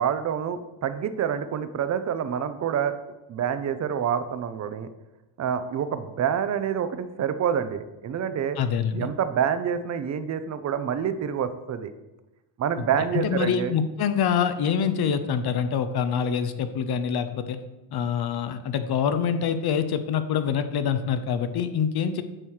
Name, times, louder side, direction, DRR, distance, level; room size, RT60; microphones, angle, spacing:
voice 1, 0.0-2.9 3.3-4.9 5.4-8.6 8.9-11.9 12.6-13.7, right 8 dB, 35° right, 11 dB, 0.5 m, -27 dB
voice 2, 8.6-9.1 13.2-17.6 17.9-22.2, left 7 dB, 50° left, 10 dB, 0.7 m, -25 dB
8.9 x 3.0 x 6.4 m, 1.0 s
cardioid pair, 125°, 50 cm